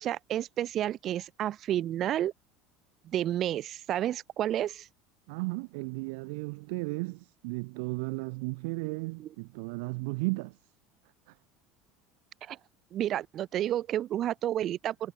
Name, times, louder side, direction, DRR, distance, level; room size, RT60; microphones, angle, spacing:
voice 1, 0.0-2.3 3.1-4.9 12.4-12.6 12.9-15.1, right 12 dB, 40° right, 0.5 m, -30 dB
voice 2, 5.3-10.6 11.3-11.4, right 28 dB, 80° right, 3.5 m, -34 dB
supercardioid pair, 130°, 0 cm